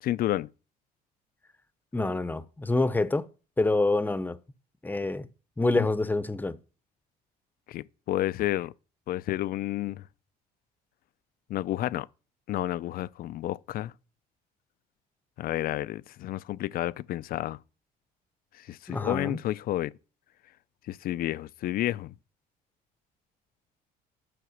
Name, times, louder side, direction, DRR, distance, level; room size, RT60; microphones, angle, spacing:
voice 1, 0.0-0.5 5.8-5.9 7.7-8.7 9.1-10.0 11.5-12.1 12.5-13.9 15.4-17.6 18.6-19.9 20.9-22.1, left 14 dB, 60° left, 0.4 m, -30 dB
voice 2, 1.9-3.2 3.6-4.4 4.8-5.3 5.6-6.6 18.9-19.4, left 2 dB, 10° left, 0.7 m, -26 dB
11.0 x 5.8 x 6.4 m
cardioid pair, 110°, 17 cm